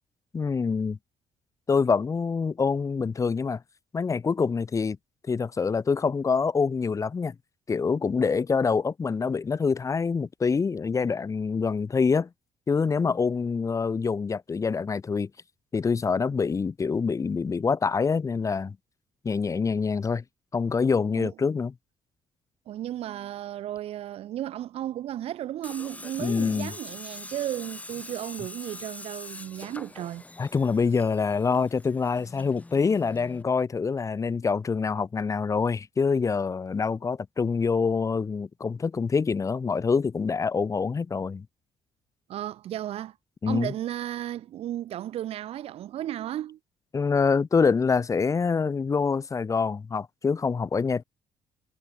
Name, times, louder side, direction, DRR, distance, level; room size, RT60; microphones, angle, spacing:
voice 1, 0.3-1.0 1.7-3.6 3.9-5.0 5.3-7.3 7.7-12.3 12.7-15.3 15.7-18.8 19.2-20.2 20.5-21.7 26.2-26.7 30.4-41.4 43.4-43.7 46.9-51.0, left 5 dB, 30° left, 3.1 m, -25 dB
voice 2, 22.7-30.2 42.3-43.2 43.5-46.6, right 12 dB, 70° right, 2.0 m, -34 dB
Tools, 25.6-33.4, left 2 dB, 15° left, 3.5 m, -44 dB
cardioid pair, 115°, 11 cm